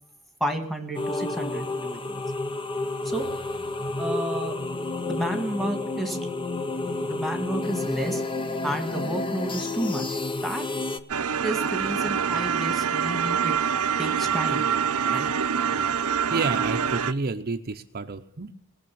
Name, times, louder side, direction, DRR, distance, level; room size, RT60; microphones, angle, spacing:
voice 1, 0.4-2.2 3.0-3.3 3.9-4.6 5.0-6.2 7.0-8.2 8.6-10.6 11.4-13.5 14.0-14.7 15.1-15.3, right 1 dB, ahead, 5 dB, 2.0 m, -31 dB
sound 1, 0.9-11.0, left 2 dB, 25° left, 0.9 m, -30 dB
sound 2, 11.1-17.1, right 7 dB, 80° right, 0.8 m, -25 dB
voice 2, 16.1-18.5, right 3 dB, 45° right, 6 dB, 0.8 m, -30 dB
20.0 x 6.8 x 8.6 m, 0.68 s
head